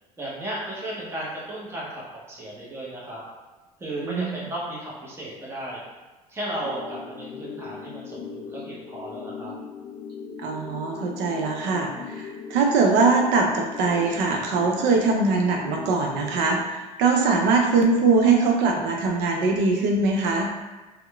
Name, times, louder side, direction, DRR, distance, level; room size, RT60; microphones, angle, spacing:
voice 1, 0.2-3.2 3.8-5.8 6.3-9.5, right 1 dB, 15° right, -6 dB, 0.8 m, -34 dB
voice 2, 4.0-4.4 8.2-8.3 10.4-20.5, right 4 dB, 60° right, 1 dB, 0.5 m, -22 dB
sound 1, 6.6-16.6, left 6 dB, 40° left, 0.5 m, -39 dB
2.8 x 2.1 x 2.3 m, 1.2 s
hypercardioid pair, 80°, 20 cm